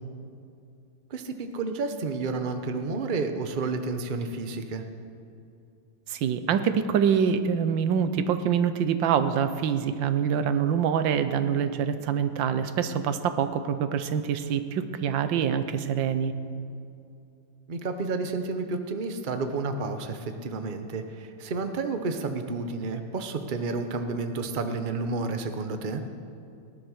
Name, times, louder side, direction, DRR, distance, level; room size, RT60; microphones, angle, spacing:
voice 1, 1.1-4.8 17.7-26.0, right 3 dB, 35° right, 7 dB, 0.8 m, -31 dB
voice 2, 6.1-16.3, right 7 dB, 90° right, 10 dB, 1.5 m, -25 dB
19.0 x 10.5 x 6.4 m, 2.5 s
omnidirectional pair, 2.0 m